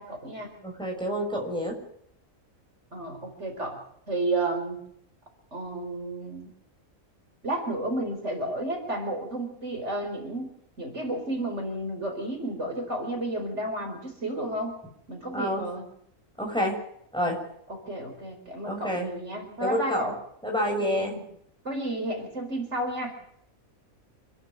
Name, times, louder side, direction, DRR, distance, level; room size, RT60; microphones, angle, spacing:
voice 1, 0.0-0.5 2.9-3.8 4.1-4.8 5.5-6.5 7.4-10.5 10.8-14.8 15.1-15.8 17.7-20.1 20.8-21.2 21.6-23.2, right 1 dB, 55° right, 3 dB, 5.0 m, -32 dB
voice 2, 0.6-1.8 15.3-15.6 16.4-16.7 17.1-17.4 18.6-19.1 19.6-20.0 20.4-21.1, equal, 5° left, -1 dB, 6.6 m, -28 dB
28.0 x 11.5 x 9.2 m, 0.71 s
omnidirectional pair, 1.4 m